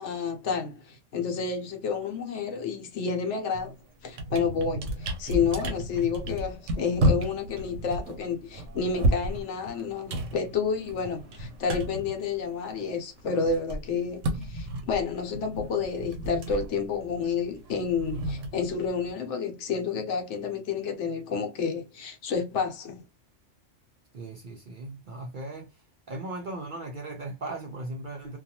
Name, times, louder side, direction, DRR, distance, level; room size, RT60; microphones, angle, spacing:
voice 1, 0.0-3.7 4.0-23.0, left 5 dB, 70° left, 1.0 m, -30 dB
sound 1, 3.5-3.7 4.0-12.9 13.2-19.1, right 1 dB, 85° right, 1.0 m, -32 dB
voice 2, 24.1-25.7 26.1-28.4, right 2 dB, 60° right, 0.5 m, -37 dB
2.5 x 2.3 x 2.8 m
omnidirectional pair, 1.3 m